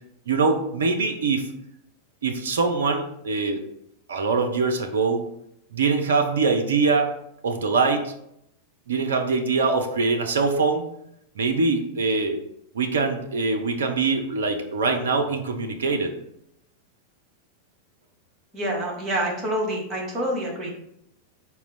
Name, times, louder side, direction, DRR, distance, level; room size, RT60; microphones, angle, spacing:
voice 1, 0.3-1.5 2.2-3.6 4.1-5.2 5.7-7.1 7.4-8.1 8.9-10.8 11.4-12.4 12.7-16.1, right 4 dB, 65° right, 5 dB, 0.4 m, -23 dB
voice 2, 18.5-20.7, right 1 dB, 25° right, -2 dB, 1.1 m, -27 dB
4.0 x 2.1 x 3.9 m, 0.77 s
figure-of-eight pair, 90°, 0 cm